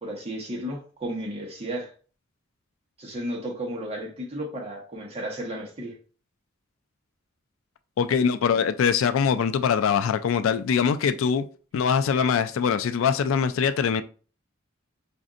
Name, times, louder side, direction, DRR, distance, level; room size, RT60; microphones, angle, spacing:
voice 1, 0.0-1.9 3.0-5.9, right 1 dB, 30° right, 1.1 m, -33 dB
voice 2, 8.0-11.5 11.7-14.0, left 7 dB, 80° left, 0.3 m, -23 dB
5.1 x 2.6 x 2.4 m
head